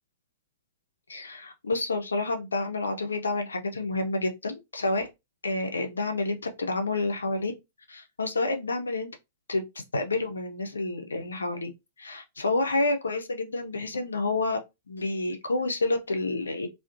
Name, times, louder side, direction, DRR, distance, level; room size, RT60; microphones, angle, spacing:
voice 1, 1.1-5.1 5.4-7.5 7.9-9.1 9.5-9.6 9.9-11.7 12.0-14.6 14.9-16.7, left 2 dB, 75° left, 0.5 m, -29 dB
2.4 x 2.1 x 2.4 m
figure-of-eight pair, 105°, 0 cm